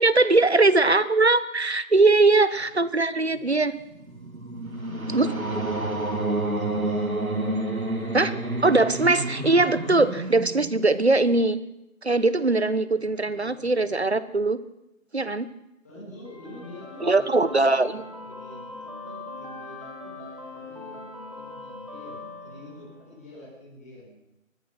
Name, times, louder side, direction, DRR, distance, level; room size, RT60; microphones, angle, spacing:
voice 1, 0.0-3.7 5.1-5.3 8.1-8.3 8.6-11.6 12.0-14.6 15.1-15.5 17.0-18.0, right 3 dB, 50° right, 16 dB, 1.4 m, -21 dB
voice 2, 3.1-3.5 4.8-7.0 13.0-13.9 15.8-24.2, left 1 dB, 10° left, -9 dB, 6.4 m, -45 dB
sound 1, 3.8-11.2, right 2 dB, 90° right, 3.6 m, -29 dB
sound 2, 16.2-23.2, left 2 dB, 25° right, 3.4 m, -41 dB
24.5 x 20.0 x 6.1 m, 0.88 s
figure-of-eight pair, 180°, 41 cm